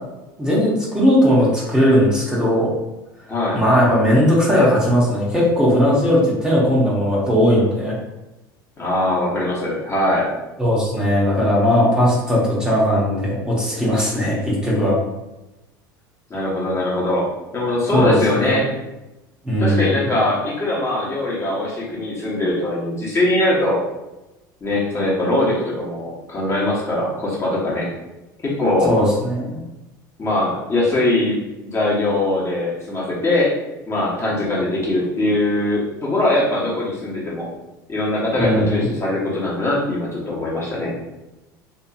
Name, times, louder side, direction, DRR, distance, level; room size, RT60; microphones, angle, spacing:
voice 1, 0.4-2.7 3.5-7.9 10.6-15.0 17.9-18.6 19.4-20.0 28.8-29.6 38.4-38.9, equal, 10° right, -7 dB, 0.9 m, -18 dB
voice 2, 3.3-3.6 8.8-10.3 16.3-18.7 19.6-23.8 24.6-27.9 28.4-28.9 30.2-31.4 31.7-33.5 33.9-37.5 37.9-40.9, left 1 dB, 25° left, -6 dB, 1.0 m, -21 dB
2.9 x 2.4 x 2.4 m, 1.0 s
hypercardioid pair, 75°, 11 cm